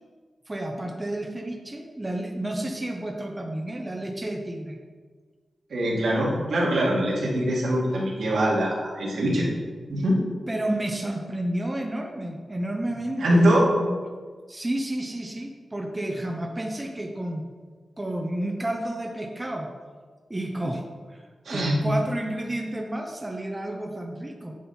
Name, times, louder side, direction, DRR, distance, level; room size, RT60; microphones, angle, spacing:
voice 1, 0.5-4.8 10.5-14.0 14.5-17.4 18.0-19.7 20.3-20.8 21.1-21.2 21.5-24.5, right 1 dB, 15° right, 2 dB, 0.8 m, -31 dB
voice 2, 5.7-9.5 9.9-10.2 13.2-13.6 21.4-21.9, equal, 85° right, -5 dB, 2.6 m, -23 dB
9.3 x 6.3 x 4.3 m, 1.5 s
wide cardioid pair, 130°, 0 cm